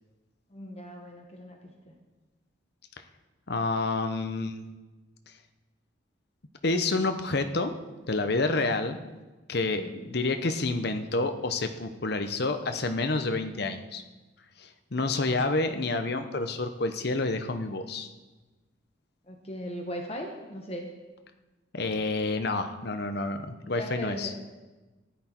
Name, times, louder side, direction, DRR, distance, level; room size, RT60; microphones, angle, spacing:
voice 1, 0.5-2.0 9.6-10.0 19.3-20.9 23.6-24.4, equal, 30° left, 2 dB, 1.2 m, -39 dB
voice 2, 3.5-4.6 6.6-7.7 8.1-9.0 9.5-14.0 14.6-18.1 21.7-24.3, left 3 dB, 55° left, 7 dB, 0.9 m, -29 dB
14.5 x 10.5 x 4.5 m, 1.2 s
head